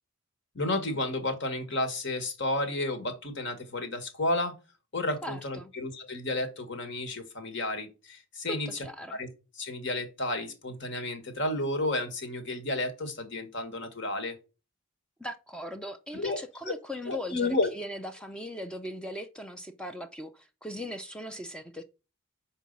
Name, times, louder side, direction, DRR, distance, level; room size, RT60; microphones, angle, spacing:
voice 1, 0.5-4.5 4.9-8.7 9.1-9.3 9.5-14.3 16.1-16.4 16.7-16.8 17.1-17.7, left 2 dB, 55° left, 1.4 m, -31 dB
voice 2, 5.2-5.7 8.5-9.2 15.2-21.8, equal, 5° left, 0.4 m, -39 dB
6.2 x 4.6 x 5.2 m
head